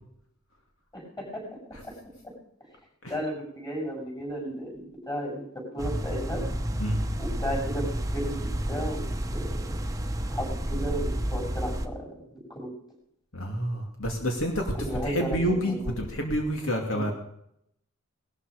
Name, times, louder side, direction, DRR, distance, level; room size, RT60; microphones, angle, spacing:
voice 1, 0.9-1.4 1.8-1.9 3.1-6.4 7.2-7.9 8.1-9.1 9.3-9.8 10.3-12.7 14.9-15.4 15.6-16.1 16.9-17.1, equal, 20° left, -1 dB, 6.8 m, -34 dB
sound 1, 5.8-11.9, right 1 dB, 15° right, 1.0 m, -30 dB
voice 2, 13.3-14.7 15.0-17.1, equal, 65° left, 2 dB, 2.6 m, -28 dB
19.5 x 13.5 x 5.1 m, 0.73 s
head